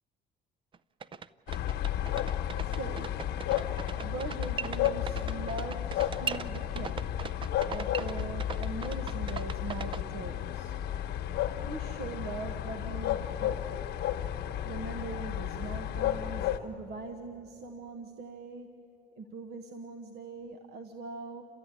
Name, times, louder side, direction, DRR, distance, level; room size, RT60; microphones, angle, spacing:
sound 1, 0.7-0.8 1.0-10.0, right 6 dB, 30° right, 0.5 m, -38 dB
sound 2, 1.5-16.6, left 11 dB, 75° left, 1.1 m, -33 dB
voice 1, 2.6-3.1 4.0-7.1 7.6-10.8 11.6-13.8 14.6-18.7 19.2-21.4, right 3 dB, 70° right, 6 dB, 1.2 m, -41 dB
29.0 x 13.0 x 9.7 m, 2.8 s
cardioid pair, 110°, 17 cm